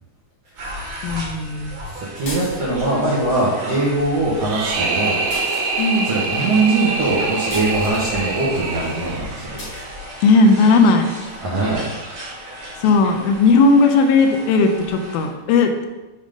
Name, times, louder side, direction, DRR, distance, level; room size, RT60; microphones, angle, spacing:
sound 1, 0.6-15.3, equal, 40° right, 2.1 m, -35 dB
voice 1, 1.0-1.8 5.8-6.1 10.2-11.1 12.8-15.9, left 3 dB, 80° left, 5 dB, 2.4 m, -16 dB
voice 2, 1.9-5.2 5.5-5.7 6.0-9.7 11.4-11.9, right 2 dB, 60° right, -9 dB, 1.8 m, -21 dB
sound 2, 2.2-3.0 5.3-6.1 7.5-8.1 9.6-9.9, left 1 dB, 65° left, 1.0 m, -34 dB
sound 3, 4.4-9.5, right 3 dB, 85° right, 1.6 m, -25 dB
7.3 x 3.7 x 5.1 m, 1.1 s
omnidirectional pair, 4.4 m